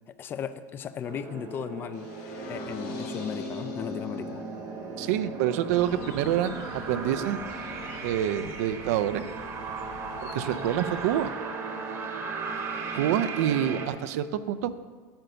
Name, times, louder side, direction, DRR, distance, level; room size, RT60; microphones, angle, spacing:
voice 1, 0.1-2.1 2.5-4.4 11.9-12.1, left 8 dB, 25° left, 13 dB, 0.3 m, -36 dB
sound 1, 1.0-13.9, right 5 dB, 35° right, 0.9 m, -37 dB
sound 2, 1.9-7.9, left 2 dB, 65° left, 2.5 m, -41 dB
voice 2, 5.0-7.4 8.0-9.3 10.3-11.3 13.0-14.7, right 11 dB, 90° right, 12 dB, 0.5 m, -27 dB
sound 3, 5.7-11.3, left 5 dB, 85° left, 0.8 m, -46 dB
8.9 x 5.1 x 6.7 m, 1.5 s
cardioid pair, 160°, 8 cm